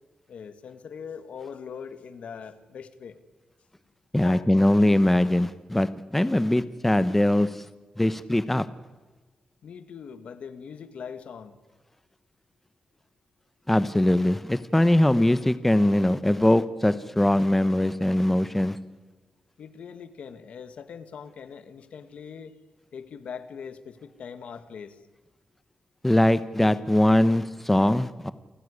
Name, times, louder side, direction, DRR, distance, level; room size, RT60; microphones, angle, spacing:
voice 1, 0.3-3.2 4.2-4.5 9.6-11.6 19.6-22.5 22.9-25.0, left 6 dB, 75° left, 11 dB, 1.7 m, -41 dB
voice 2, 4.1-7.6 8.0-8.7 13.7-18.8 26.0-28.3, left 1 dB, 10° left, 14 dB, 0.8 m, -21 dB
28.0 x 13.0 x 9.9 m, 1.2 s
wide cardioid pair, 105°, 2 cm